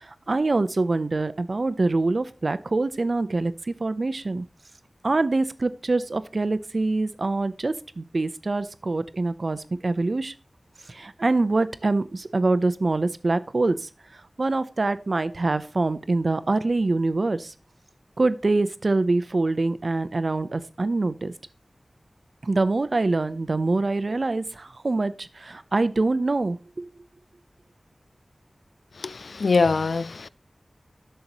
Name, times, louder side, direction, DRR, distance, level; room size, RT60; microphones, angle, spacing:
voice 1, 0.0-4.4 5.0-10.3 10.9-13.9 14.4-17.5 18.2-21.3 22.4-26.9, right 3 dB, 60° right, 0.7 m, -25 dB
voice 2, 29.0-30.3, left 4 dB, 90° left, 0.3 m, -23 dB
10.5 x 6.8 x 2.9 m
wide cardioid pair, 65°, 0 cm